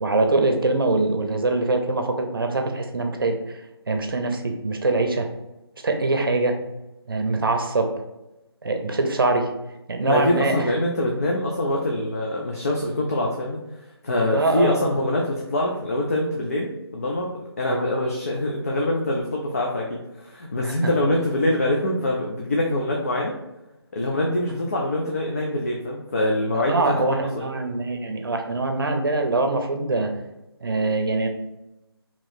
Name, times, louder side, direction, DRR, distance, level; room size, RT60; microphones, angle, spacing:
voice 1, 0.0-3.6 3.9-5.3 5.8-6.6 7.1-7.9 8.6-9.5 9.9-10.7 14.3-14.9 17.7-17.8 20.6-20.7 26.5-30.1 30.6-31.3, right 2 dB, 55° right, 4 dB, 0.6 m, -23 dB
voice 2, 10.0-13.6 14.0-17.3 17.6-23.3 23.9-27.5, left 1 dB, 35° left, -2 dB, 0.4 m, -24 dB
3.0 x 2.9 x 4.1 m, 0.95 s
figure-of-eight pair, 170°, 14 cm